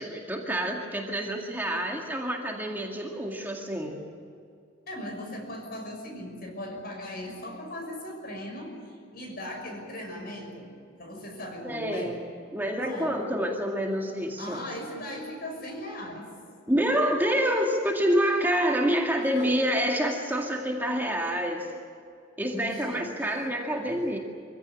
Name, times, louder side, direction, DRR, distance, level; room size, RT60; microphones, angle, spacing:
voice 1, 0.0-4.0 11.6-12.2 12.5-14.6 16.7-21.7 22.4-24.2, equal, 10° right, 0 dB, 2.0 m, -27 dB
voice 2, 4.9-12.2 12.8-13.4 14.4-16.3 19.3-19.5 22.5-23.1, left 1 dB, 50° left, 3 dB, 6.2 m, -38 dB
25.0 x 16.0 x 10.0 m, 2.4 s
head